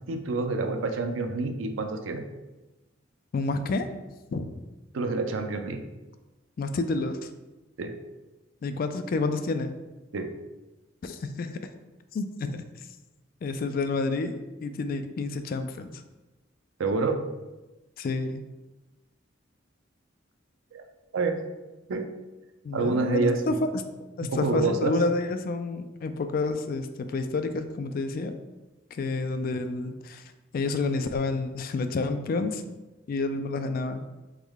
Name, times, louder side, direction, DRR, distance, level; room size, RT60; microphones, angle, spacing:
voice 1, 0.1-2.2 4.9-5.8 7.8-8.0 10.1-10.3 16.8-17.3 20.7-20.8 21.1-21.5 21.9-22.1 22.7-23.4 24.2-25.0, right 3 dB, 85° right, 6 dB, 0.5 m, -27 dB
voice 2, 3.3-3.9 4.3-4.5 6.6-7.3 8.6-9.7 11.0-11.6 12.1-12.6 13.4-15.9 18.0-18.4 22.6-23.8 24.2-28.4 29.0-30.2 30.5-32.6 33.1-34.1, left 3 dB, 50° left, 9 dB, 0.3 m, -29 dB
3.6 x 3.1 x 3.4 m, 1.1 s
head